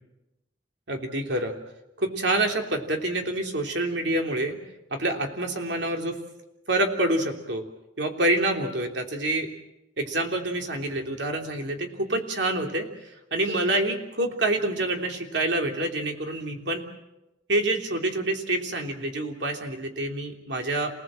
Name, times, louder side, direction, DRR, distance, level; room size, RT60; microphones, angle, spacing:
voice 1, 0.9-1.5 2.0-4.6 4.9-6.2 6.7-7.6 8.0-9.5 10.0-16.8 17.5-20.9, right 1 dB, 70° right, 3 dB, 3.3 m, -27 dB
28.5 x 18.5 x 7.7 m, 0.97 s
head